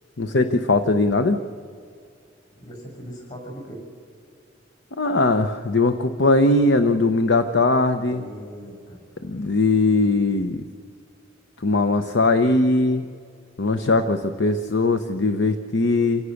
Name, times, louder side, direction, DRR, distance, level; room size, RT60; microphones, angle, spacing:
voice 1, 0.2-1.4 5.0-8.2 9.2-10.6 11.6-13.0 13.6-16.2, left 2 dB, 65° left, 8 dB, 0.8 m, -20 dB
voice 2, 2.5-3.8 8.1-9.6, equal, 45° left, 1 dB, 7.3 m, -40 dB
27.0 x 16.5 x 6.5 m, 2.3 s
head